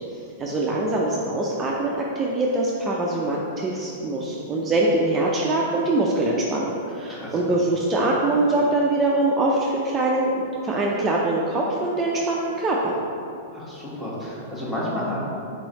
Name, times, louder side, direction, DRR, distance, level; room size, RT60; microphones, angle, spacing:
voice 1, 0.1-12.9, right 2 dB, 25° right, -3 dB, 0.4 m, -23 dB
voice 2, 7.1-7.5 13.5-15.2, left 1 dB, 10° left, -7 dB, 1.3 m, -31 dB
3.7 x 3.1 x 4.1 m, 2.7 s
hypercardioid pair, 110°, 0 cm